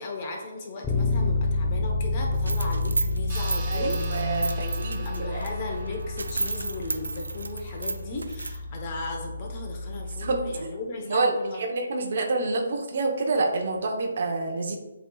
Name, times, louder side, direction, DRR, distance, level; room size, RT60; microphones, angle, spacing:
voice 1, 0.0-4.2 4.5-11.6, left 3 dB, 35° left, 1 dB, 0.9 m, -36 dB
Bass guitar, 0.8-10.7, left 2 dB, 10° left, 0.6 m, -30 dB
sound 1, 2.3-5.5 5.9-6.0 6.2-8.6, right 3 dB, 85° right, 0.4 m, -32 dB
sound 2, 3.3-8.2, right 3 dB, 25° right, 1.3 m, -44 dB
voice 2, 3.7-5.5 10.2-10.4 11.0-14.8, right 3 dB, 55° right, 3 dB, 0.8 m, -27 dB
7.5 x 3.1 x 2.3 m, 1.0 s
hypercardioid pair, 150°, 0 cm